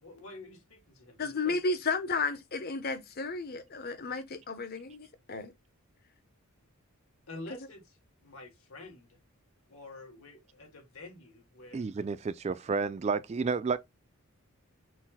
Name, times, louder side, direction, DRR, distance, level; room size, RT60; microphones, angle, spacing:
voice 1, 0.0-1.8 7.3-8.0 8.2-9.1 9.7-11.9, left 2 dB, 70° left, 2.0 m, -48 dB
voice 2, 1.2-5.5, left 3 dB, 45° left, 0.8 m, -33 dB
voice 3, 11.7-13.8, right 4 dB, 30° right, 0.3 m, -31 dB
6.1 x 2.1 x 3.9 m
head